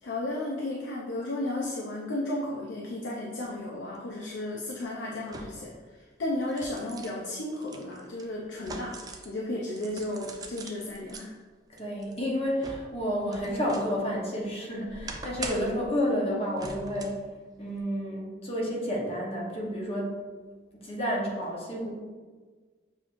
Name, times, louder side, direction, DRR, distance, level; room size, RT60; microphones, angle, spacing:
voice 1, 0.0-5.7 6.2-8.9 9.2-11.3, left 1 dB, 75° left, -3 dB, 0.5 m, -33 dB
sound 1, 3.9-4.0 5.3-5.8 6.2-9.4 9.7-11.2 11.8-14.0 14.4-15.9 16.6-17.3 17.7-17.8, right 3 dB, 20° right, 0.3 m, -42 dB
voice 2, 11.7-17.2 17.6-20.2 20.7-21.9, equal, 30° left, -3 dB, 1.0 m, -30 dB
6.8 x 3.0 x 2.5 m, 1.4 s
head